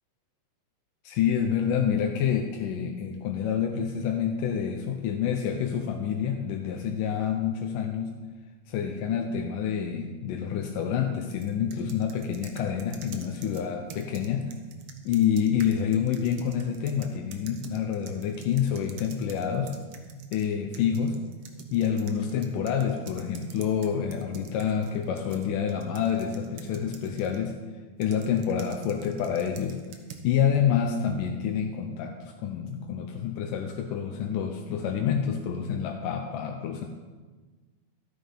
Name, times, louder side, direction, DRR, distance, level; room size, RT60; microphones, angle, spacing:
voice 1, 1.0-8.1 8.7-14.5 15.1-19.7 20.3-21.2 21.7-27.5 28.0-29.8 30.2-36.9, left 8 dB, 90° left, 3 dB, 2.4 m, -28 dB
sound 1, 11.3-20.5 20.7-27.4 28.0-30.3, right 7 dB, 70° right, 1.3 m, -48 dB
12.5 x 9.1 x 5.7 m, 1.3 s
omnidirectional pair, 3.7 m